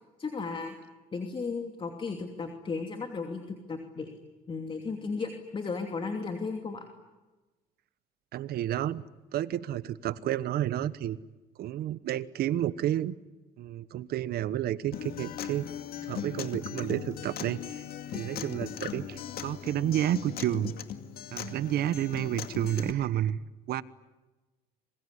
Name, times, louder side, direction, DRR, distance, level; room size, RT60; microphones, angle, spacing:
voice 1, 0.2-0.8 1.1-4.1 4.5-6.9, left 4 dB, 30° left, 4 dB, 2.9 m, -35 dB
voice 2, 8.3-9.0 9.3-11.2 11.6-13.1 13.6-15.7 16.0-17.8 18.1-20.7 21.3-23.4 23.7-23.8, right 12 dB, 65° right, 16 dB, 1.2 m, -30 dB
Acoustic guitar, 14.9-22.9, left 9 dB, 65° left, 2.4 m, -39 dB
sound 1, 17.0-20.9, right 2 dB, 15° right, 5.1 m, -55 dB
26.5 x 22.5 x 9.9 m, 1.2 s
cardioid pair, 110°, 17 cm